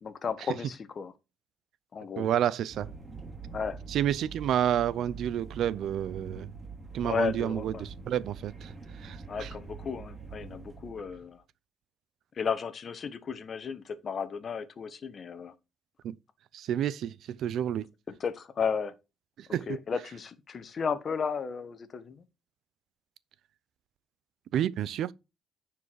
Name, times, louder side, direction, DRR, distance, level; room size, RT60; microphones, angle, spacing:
voice 1, 0.0-1.1 1.9-2.3 3.5-3.8 7.0-7.8 9.3-11.4 12.4-15.5 18.1-18.9 19.7-22.2, left 6 dB, 50° left, 1.2 m, -34 dB
voice 2, 2.1-2.9 3.9-6.5 6.9-9.5 16.0-16.1 16.5-17.9 19.4-19.8 24.5-25.1, right 10 dB, 75° right, 0.5 m, -30 dB
sound 1, 2.7-11.3, right 4 dB, 25° right, 3.1 m, -44 dB
9.8 x 4.8 x 4.7 m
cardioid pair, 90°, 0 cm